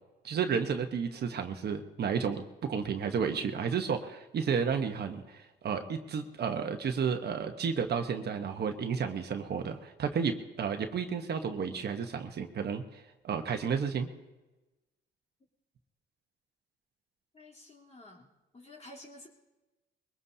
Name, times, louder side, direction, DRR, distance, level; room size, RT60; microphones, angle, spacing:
voice 1, 0.2-14.1, right 6 dB, 55° right, 6 dB, 1.1 m, -32 dB
voice 2, 17.3-18.3 18.5-19.3, left 1 dB, 30° left, -3 dB, 3.4 m, -51 dB
22.0 x 18.5 x 2.8 m, 1.1 s
cardioid pair, 90°, 20 cm